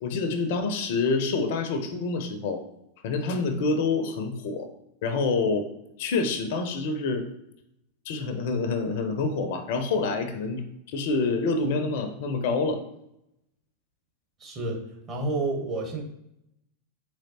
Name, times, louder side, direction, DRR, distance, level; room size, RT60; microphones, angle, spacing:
voice 1, 0.0-2.6 3.0-4.7 5.0-5.7 6.0-7.2 8.1-10.6 10.9-12.8, left 3 dB, 50° left, 7 dB, 0.5 m, -27 dB
voice 2, 14.4-14.8 15.1-16.0, right 2 dB, 30° right, 0 dB, 1.0 m, -29 dB
3.8 x 3.0 x 2.8 m, 0.82 s
figure-of-eight pair, 90°, 0 cm